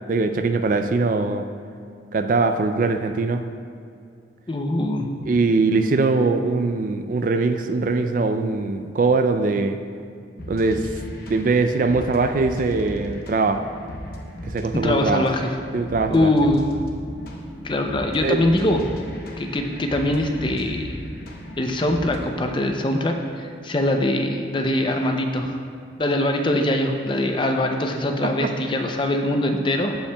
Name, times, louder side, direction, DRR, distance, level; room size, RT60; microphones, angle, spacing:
voice 1, 0.1-1.4 2.1-3.4 5.3-9.8 10.5-10.9 11.3-13.6 14.4-15.2 15.7-16.3 18.2-18.4 28.2-28.5, right 3 dB, 45° right, 8 dB, 0.3 m, -21 dB
voice 2, 4.5-5.1 14.8-15.5 16.1-16.7 17.6-18.8 19.4-21.0 21.6-25.6 26.0-30.0, left 1 dB, 25° left, 4 dB, 0.5 m, -22 dB
sound 1, 10.4-22.4, left 1 dB, 50° left, 0.9 m, -36 dB
15.0 x 5.6 x 2.3 m, 2.4 s
head